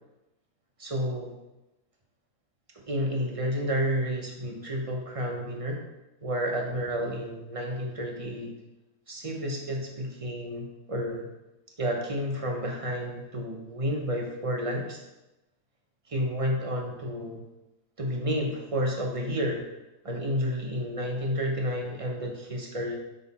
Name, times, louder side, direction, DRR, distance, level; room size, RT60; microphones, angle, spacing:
voice 1, 0.8-1.3 2.9-5.8 6.2-8.5 9.1-11.3 11.8-15.0 16.1-17.4 18.0-19.7 20.0-22.9, equal, 35° right, 0 dB, 0.6 m, -30 dB
6.2 x 3.8 x 4.1 m, 0.98 s
omnidirectional pair, 1.5 m